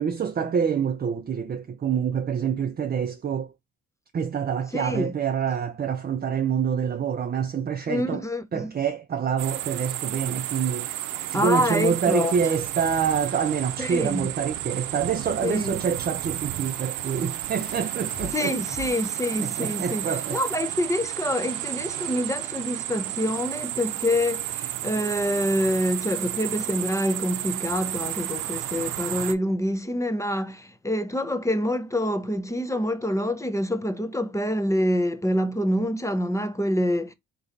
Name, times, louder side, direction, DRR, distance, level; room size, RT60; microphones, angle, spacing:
voice 1, 0.0-3.5 4.1-8.2 8.5-18.6 19.4-20.4, right 7 dB, 35° right, 0.6 m, -26 dB
voice 2, 4.7-5.1 7.9-8.7 11.3-12.4 13.8-14.3 15.4-15.7 18.3-37.1, left 1 dB, 10° left, 0.7 m, -26 dB
sound 1, 9.4-29.3, right 13 dB, 90° right, 0.6 m, -32 dB
sound 2, 17.5-22.9, left 4 dB, 65° left, 1.2 m, -47 dB
3.8 x 3.1 x 3.9 m
cardioid pair, 90°, 30 cm